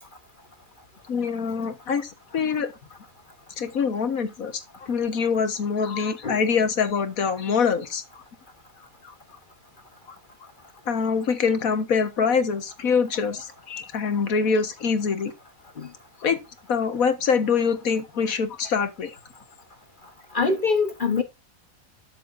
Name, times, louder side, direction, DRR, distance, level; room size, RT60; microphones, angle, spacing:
voice 1, 1.1-2.7 3.6-8.0 9.0-9.1 10.9-15.3 16.2-16.4 16.7-19.1, left 5 dB, 75° left, 1.8 m, -24 dB
voice 2, 20.3-21.2, left 4 dB, 40° left, 1.0 m, -23 dB
13.0 x 6.8 x 2.6 m
omnidirectional pair, 1.5 m